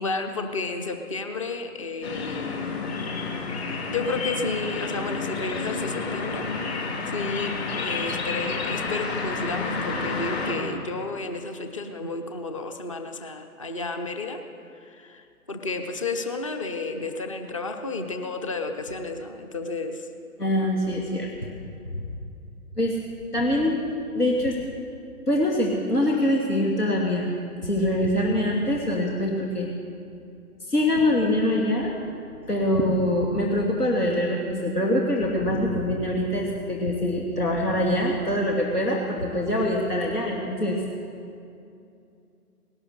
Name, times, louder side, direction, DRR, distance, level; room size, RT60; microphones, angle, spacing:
voice 1, 0.0-2.8 3.9-6.4 7.1-14.4 14.9-20.1, left 3 dB, 20° left, 6 dB, 0.6 m, -32 dB
sound 1, 2.0-10.5, left 4 dB, 45° left, 3.0 m, -30 dB
voice 2, 20.4-21.3 21.9-22.0 22.8-23.0 23.3-23.8 24.1-24.6 25.3-27.3 27.6-29.7 30.6-31.9 32.5-40.8, left 1 dB, 80° left, -1 dB, 2.4 m, -24 dB
19.0 x 12.0 x 6.5 m, 2.6 s
figure-of-eight pair, 140°, 45 cm